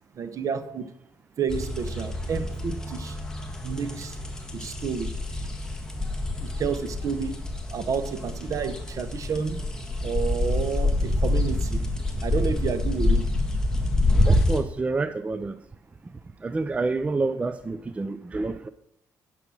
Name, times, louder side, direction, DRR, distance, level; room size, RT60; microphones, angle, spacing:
voice 1, 0.2-0.9 1.4-3.2 3.6-4.2 4.5-5.1 6.4-7.4 7.7-9.6 10.0-11.8 12.2-13.2, right 6 dB, 50° right, 1.0 m, -30 dB
sound 1, 1.5-14.6, left 1 dB, 10° left, 1.6 m, -27 dB
voice 2, 14.3-15.6 16.4-18.7, right 3 dB, 20° right, 0.4 m, -28 dB
10.5 x 6.0 x 6.2 m
cardioid pair, 115°, 7 cm